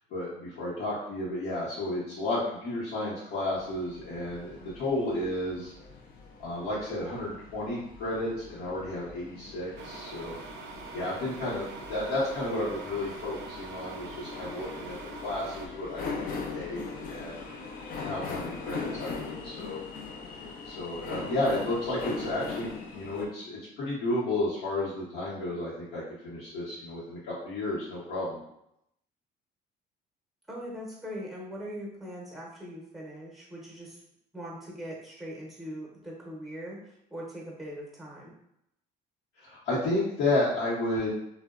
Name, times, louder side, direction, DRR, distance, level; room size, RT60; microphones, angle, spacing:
voice 1, 0.1-5.7 6.4-10.3 10.9-15.0 15.2-17.3 18.0-19.8 20.6-28.4 39.4-41.1, left 1 dB, 80° left, -9 dB, 0.9 m, -32 dB
sound 1, 3.5-23.3, left 4 dB, 55° left, 0.4 m, -41 dB
sound 2, 9.7-15.7, right 4 dB, 85° right, 0.4 m, -44 dB
voice 2, 30.5-34.0 34.3-38.3, equal, ahead, -3 dB, 0.7 m, -41 dB
2.7 x 2.1 x 2.3 m, 0.78 s
cardioid pair, 110°, 17 cm